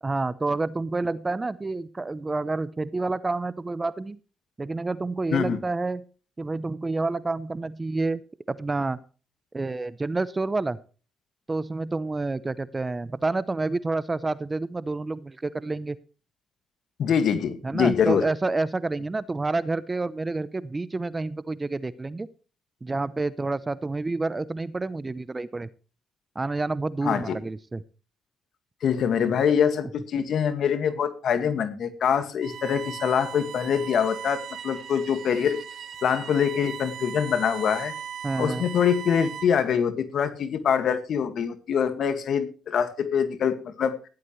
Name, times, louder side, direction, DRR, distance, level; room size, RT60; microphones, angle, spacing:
voice 1, 0.0-4.2 4.6-6.0 6.4-8.2 8.5-9.0 9.5-10.8 11.5-16.0 17.6-22.3 22.8-25.7 26.3-27.8 38.2-38.7, right 3 dB, 20° right, 17 dB, 0.7 m, -28 dB
voice 2, 17.0-18.3 27.0-27.4 28.8-35.6 36.0-37.9 38.4-44.0, left 7 dB, 65° left, 10 dB, 1.9 m, -24 dB
Bowed string instrument, 32.4-39.7, right 8 dB, 65° right, 1.6 m, -38 dB
15.5 x 11.5 x 3.2 m, 0.36 s
cardioid pair, 90°, 0 cm